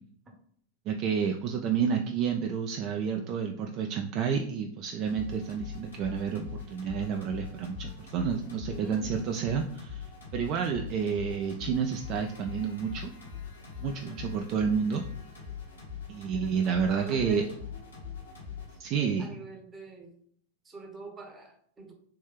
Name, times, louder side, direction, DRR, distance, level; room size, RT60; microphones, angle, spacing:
voice 1, 0.9-10.1 10.3-13.1 13.8-15.0 16.1-17.5 18.8-19.4, right 7 dB, 40° right, 3 dB, 0.3 m, -30 dB
sound 1, 5.1-18.8, left 7 dB, 70° left, 1.2 m, -42 dB
voice 2, 8.7-9.1 13.8-14.2 16.3-16.6 16.9-17.6 19.0-20.1 20.6-21.9, right 2 dB, 20° right, 2 dB, 0.8 m, -45 dB
3.2 x 3.0 x 3.4 m, 0.62 s
figure-of-eight pair, 90°, 0 cm